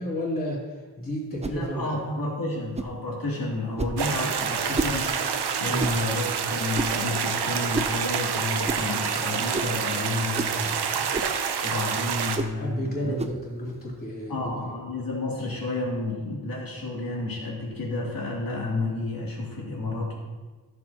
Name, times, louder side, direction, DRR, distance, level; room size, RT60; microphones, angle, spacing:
voice 1, 0.0-2.0 5.6-6.1 10.9-11.1 12.6-14.7, equal, 25° left, -6 dB, 3.1 m, -32 dB
voice 2, 1.4-5.1 5.6-10.8 11.6-13.2 14.3-20.2, left 2 dB, 60° left, -3 dB, 2.7 m, -31 dB
sound 1, 1.4-1.6 2.7-3.0 3.8-4.0 4.7-5.0 5.8-6.0 6.7-7.0 7.7-8.0 8.6-8.8 9.5-9.8 10.3-10.6 11.1-11.4 12.3-12.6 13.2-13.4, right 4 dB, 20° right, 0.4 m, -30 dB
sound 2, 4.0-12.4, right 7 dB, 85° right, 0.8 m, -28 dB
14.0 x 7.8 x 2.9 m, 1.3 s
wide cardioid pair, 150°, 39 cm